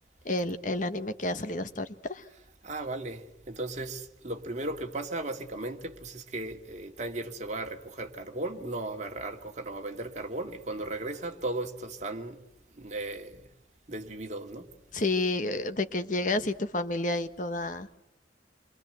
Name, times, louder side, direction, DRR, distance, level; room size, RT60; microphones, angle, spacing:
voice 1, 0.2-2.2 14.9-17.9, left 2 dB, 45° left, 1.2 m, -30 dB
voice 2, 2.6-12.4 12.8-13.4 13.9-14.7, right 2 dB, 40° right, 2.3 m, -36 dB
28.5 x 24.0 x 8.0 m
head